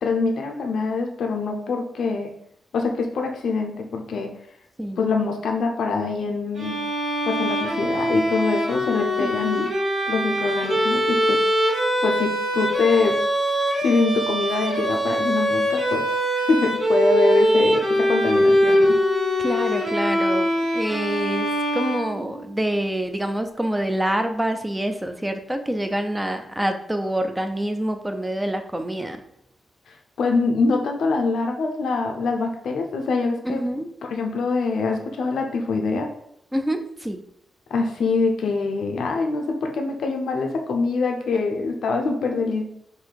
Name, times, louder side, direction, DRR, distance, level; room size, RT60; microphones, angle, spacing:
voice 1, 0.0-2.3 2.7-4.3 5.0-6.8 7.2-9.7 10.1-11.4 12.0-13.2 13.5-16.1 16.3-19.0 29.9-33.6 34.1-36.1 37.7-42.6, left 4 dB, 70° left, 3 dB, 0.5 m, -24 dB
Bowed string instrument, 6.6-22.5, equal, 70° right, 1.3 m, -22 dB
voice 2, 9.2-9.7 19.4-29.2 33.4-33.9 36.5-37.2, right 1 dB, 5° right, 7 dB, 0.4 m, -26 dB
4.0 x 2.6 x 4.6 m, 0.74 s
wide cardioid pair, 170°, 0 cm